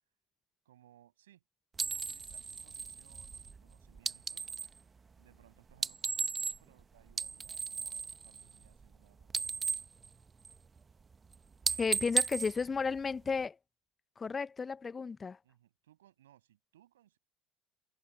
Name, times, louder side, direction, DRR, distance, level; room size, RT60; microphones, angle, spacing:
voice 1, 0.6-1.4 1.8-4.5 5.2-9.9 15.4-17.2, right 12 dB, 75° right, 7.7 m, -65 dB
sound 1, 1.8-4.8 5.7-6.8 7.1-9.0 9.2-10.8 11.1-11.3 11.6-13.5, right 5 dB, 25° right, 1.2 m, -36 dB
voice 2, 11.8-13.6 14.2-15.4, left 5 dB, 25° left, 1.0 m, -33 dB
figure-of-eight pair, 65°, 0 cm